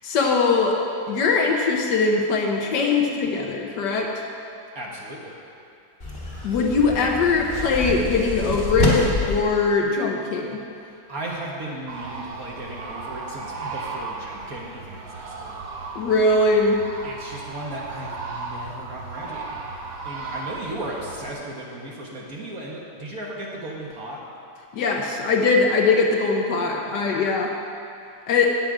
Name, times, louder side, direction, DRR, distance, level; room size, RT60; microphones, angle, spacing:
voice 1, 0.0-0.8 1.1-4.1 6.4-10.6 15.9-16.8 24.7-27.5 28.3-28.5, left 4 dB, 65° left, 1 dB, 1.4 m, -21 dB
voice 2, 4.7-5.3 10.8-15.6 17.0-19.6 20.0-24.2, right 1 dB, 50° right, -3 dB, 1.5 m, -36 dB
sound 1, 6.0-9.4, left 2 dB, 30° left, 1.4 m, -26 dB
sound 2, 11.9-21.3, right 3 dB, 70° right, 1.6 m, -35 dB
8.8 x 7.7 x 4.7 m, 2.5 s
omnidirectional pair, 2.1 m